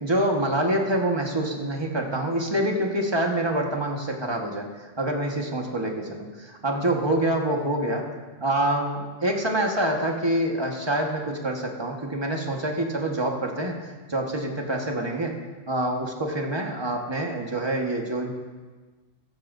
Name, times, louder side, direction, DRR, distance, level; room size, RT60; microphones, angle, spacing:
voice 1, 0.0-4.7 5.0-8.1 8.4-15.3 15.7-18.3, right 1 dB, 20° right, 1 dB, 1.5 m, -26 dB
15.0 x 13.5 x 2.7 m, 1.3 s
omnidirectional pair, 1.3 m